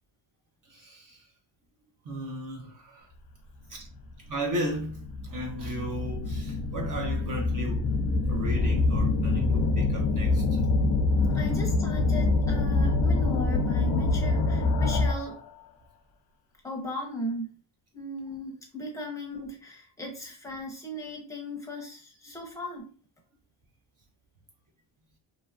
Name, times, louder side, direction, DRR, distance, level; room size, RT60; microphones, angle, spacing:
voice 1, 0.6-1.3 2.0-3.1 3.7-3.9 4.3-7.9 8.2-10.6, equal, 45° right, 0.5 m, -35 dB
sound 1, 3.9-4.1 4.7-15.4, left 3 dB, 55° left, 0.5 m, -25 dB
voice 2, 11.3-15.4 16.6-17.6 17.9-22.9, left 1 dB, 5° left, 0.6 m, -37 dB
2.8 x 2.5 x 2.2 m
cardioid pair, 160°, 47 cm